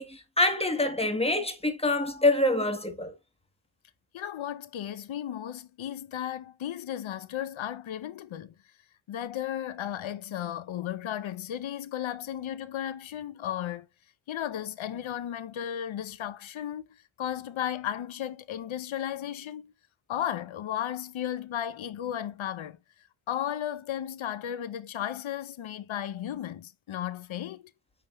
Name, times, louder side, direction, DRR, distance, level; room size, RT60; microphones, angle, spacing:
voice 1, 0.0-3.1, left 2 dB, 10° left, 1.6 m, -26 dB
voice 2, 4.1-8.5 9.1-13.9 14.3-16.9 17.2-19.7 20.1-22.8 23.3-27.7, left 10 dB, 80° left, 0.8 m, -34 dB
9.3 x 3.5 x 3.0 m
cardioid pair, 75°, 47 cm